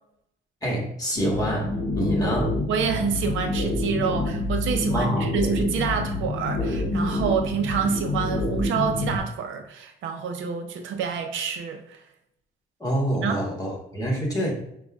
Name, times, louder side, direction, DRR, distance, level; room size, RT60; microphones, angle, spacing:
voice 1, 0.6-2.6 4.9-5.3 12.8-14.5, equal, 20° left, -2 dB, 1.3 m, -26 dB
sound 1, 1.2-9.2, left 2 dB, 60° left, 0.8 m, -27 dB
voice 2, 2.7-12.0 13.1-13.4, right 6 dB, 80° right, 6 dB, 0.5 m, -27 dB
5.2 x 2.2 x 2.3 m, 0.76 s
cardioid pair, 90°, 20 cm